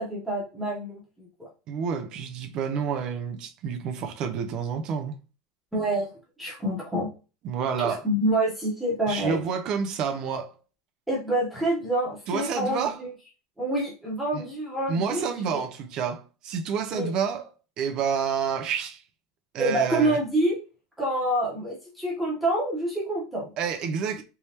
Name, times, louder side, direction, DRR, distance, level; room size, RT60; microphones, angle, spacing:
voice 1, 0.0-1.5 5.7-6.1 6.4-7.1 7.8-9.4 11.1-13.1 13.6-15.6 16.9-17.1 19.6-20.6 21.0-23.5, right 1 dB, 5° right, 1.0 m, -27 dB
voice 2, 1.7-5.2 7.4-8.1 9.1-10.6 12.3-13.0 14.3-14.4 14.9-17.5 17.8-19.0 19.5-20.2 23.6-24.2, right 6 dB, 35° right, 0.5 m, -29 dB
3.4 x 3.1 x 2.8 m
cardioid pair, 175°, 2 cm